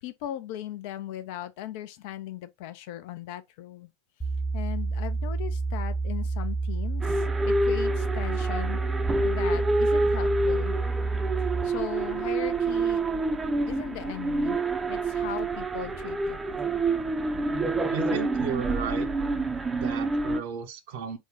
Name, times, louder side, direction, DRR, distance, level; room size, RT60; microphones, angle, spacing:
voice 1, 0.0-3.9 4.5-8.8 9.2-10.8 11.6-13.0 13.7-14.6 14.9-16.4, left 12 dB, 60° left, 0.4 m, -38 dB
sound 1, 4.2-11.6, right 3 dB, 15° left, 0.8 m, -29 dB
sound 2, 7.0-20.4, right 2 dB, 15° right, 0.5 m, -27 dB
voice 2, 17.9-19.1 19.7-21.2, right 7 dB, 60° right, 0.7 m, -34 dB
3.6 x 2.1 x 3.3 m
figure-of-eight pair, 80°, 0 cm